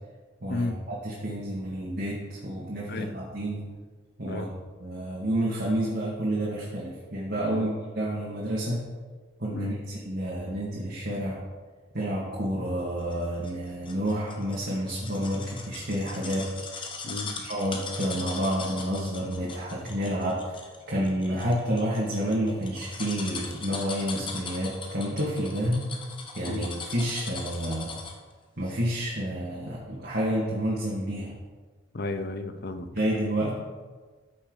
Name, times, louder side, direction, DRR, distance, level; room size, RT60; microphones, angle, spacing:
voice 1, 0.4-3.6 4.2-4.5 4.8-8.8 9.4-9.7 10.1-11.4 11.9-16.8 17.4-25.9 26.3-27.9 28.6-31.3 32.8-33.5, equal, 50° right, -7 dB, 2.1 m, -29 dB
sound 1, 13.1-28.3 28.7-28.8, left 4 dB, 25° left, 0.9 m, -40 dB
voice 2, 17.0-17.4 26.5-26.7 31.9-33.0, left 2 dB, 50° left, 10 dB, 0.6 m, -33 dB
14.0 x 5.9 x 4.1 m, 1.4 s
head